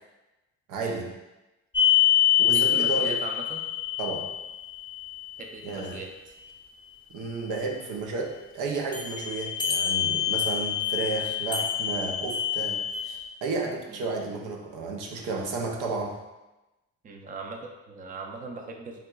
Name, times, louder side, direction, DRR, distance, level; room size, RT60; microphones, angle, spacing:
voice 1, 0.7-1.1 2.4-3.2 4.0-4.3 5.6-6.0 7.1-16.2, right 3 dB, 90° right, 1 dB, 0.6 m, -32 dB
sound 1, 1.7-5.3 8.9-13.2, left 10 dB, 15° left, 0.6 m, -26 dB
voice 2, 2.5-3.7 5.4-6.1 13.9-14.0 17.0-19.0, right 3 dB, 30° right, 2 dB, 0.4 m, -39 dB
3.6 x 2.8 x 2.3 m, 1.0 s
cardioid pair, 90°, 30 cm